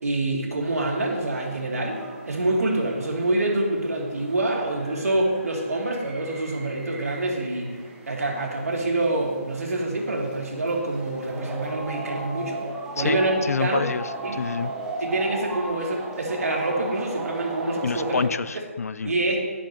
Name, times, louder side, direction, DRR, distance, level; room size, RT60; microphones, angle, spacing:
voice 1, 0.0-7.8 8.1-12.6 12.9-13.8 14.2-14.4 15.0-18.2 18.5-18.6 19.0-19.4, right 2 dB, 85° right, -1 dB, 2.3 m, -26 dB
sound 1, 0.6-18.3, right 2 dB, 5° right, 0.7 m, -37 dB
voice 2, 13.0-14.0 14.3-14.7 17.8-19.1, left 5 dB, 80° left, 16 dB, 0.4 m, -27 dB
10.5 x 8.4 x 3.1 m, 1.5 s
hypercardioid pair, 160°, 8 cm